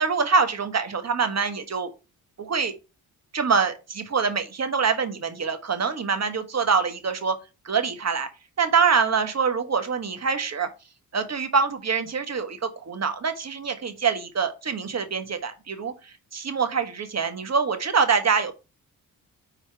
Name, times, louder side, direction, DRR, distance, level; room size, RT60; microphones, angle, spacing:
voice 1, 0.0-1.9 2.4-2.7 3.3-7.3 7.6-8.3 8.6-10.7 11.1-18.5, right 5 dB, 40° right, 1.4 m, -25 dB
4.8 x 4.1 x 5.7 m
cardioid pair, 65°, 39 cm